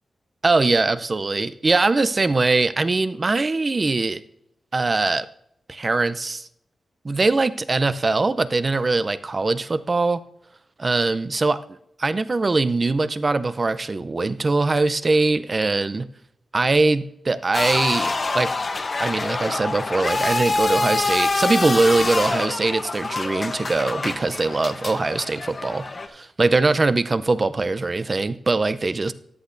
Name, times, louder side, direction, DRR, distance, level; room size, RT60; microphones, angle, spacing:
voice 1, 0.4-4.2 4.7-5.3 5.7-6.5 7.0-10.2 10.8-11.6 12.0-16.1 16.5-18.5 19.0-29.1, right 3 dB, 35° right, 14 dB, 0.5 m, -22 dB
sound 1, 17.5-26.1, left 3 dB, 45° left, 0.9 m, -26 dB
13.5 x 10.0 x 2.6 m, 0.73 s
wide cardioid pair, 95°, 0 cm